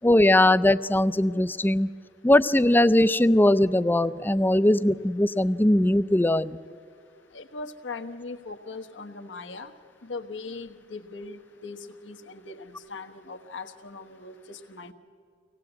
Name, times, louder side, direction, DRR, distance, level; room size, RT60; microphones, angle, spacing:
voice 1, 0.0-1.9 2.2-6.6, left 1 dB, 10° left, 14 dB, 0.5 m, -20 dB
voice 2, 7.3-9.7 10.0-11.8 12.0-14.9, left 3 dB, 85° left, 5 dB, 1.3 m, -39 dB
24.5 x 18.0 x 8.1 m, 2.3 s
head